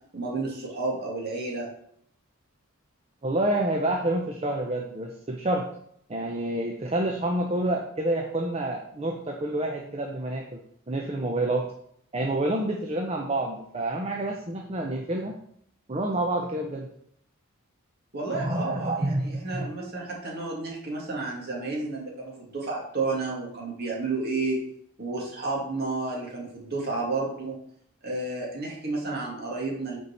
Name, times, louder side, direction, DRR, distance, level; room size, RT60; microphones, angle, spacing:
voice 1, 0.1-1.7 18.1-24.6 25.0-27.6 28.0-30.0, right 3 dB, 50° right, -3 dB, 2.3 m, -31 dB
voice 2, 3.2-5.7 6.1-10.4 10.9-11.7 12.1-15.4 15.9-16.9 18.3-19.7, right 1 dB, 30° right, 2 dB, 0.7 m, -28 dB
5.8 x 4.6 x 6.5 m, 0.69 s
head